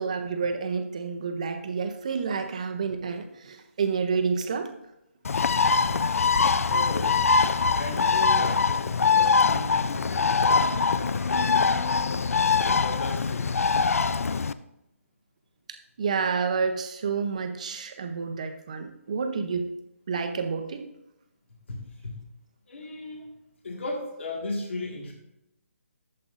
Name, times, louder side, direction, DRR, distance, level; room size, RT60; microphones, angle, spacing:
voice 1, 0.0-4.7 16.0-19.7 20.1-20.8, right 5 dB, 30° right, 7 dB, 0.6 m, -29 dB
Bird, 5.2-14.5, left 5 dB, 75° left, 0.4 m, -23 dB
voice 2, 6.7-7.3 7.7-11.6 12.5-13.6 21.7-22.2 22.7-23.3 23.6-25.1, left 2 dB, 55° left, 0 dB, 1.7 m, -36 dB
12.0 x 7.4 x 2.5 m, 0.85 s
hypercardioid pair, 175°, 8 cm